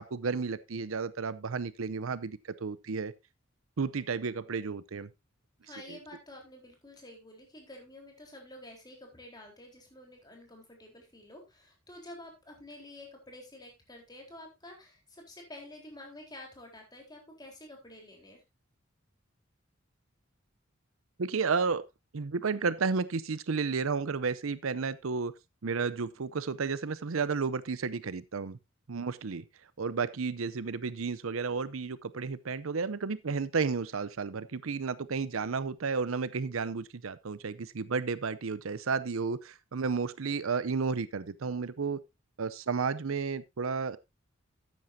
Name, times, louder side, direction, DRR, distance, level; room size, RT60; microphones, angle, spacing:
voice 1, 0.0-3.1 3.8-5.1 5.9-6.0 21.2-21.8 22.1-25.3 25.6-28.6 28.9-29.4 29.8-42.0 42.4-44.0, right 5 dB, 85° right, 0.6 m, -32 dB
voice 2, 5.6-18.4, left 1 dB, 20° left, 3.9 m, -49 dB
13.0 x 9.3 x 2.7 m
head